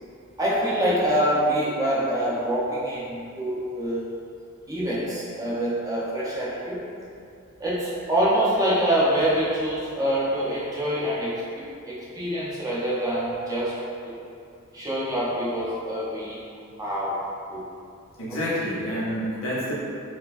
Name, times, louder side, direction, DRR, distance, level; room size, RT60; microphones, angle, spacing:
voice 1, 0.4-4.0 4.7-6.8 7.6-14.1 14.7-16.4 16.8-17.2 17.5-17.6 18.3-18.4, right 1 dB, 15° right, -8 dB, 0.6 m, -25 dB
voice 2, 18.2-19.7, equal, 65° left, -8 dB, 0.9 m, -28 dB
4.5 x 2.2 x 2.4 m, 2.4 s
head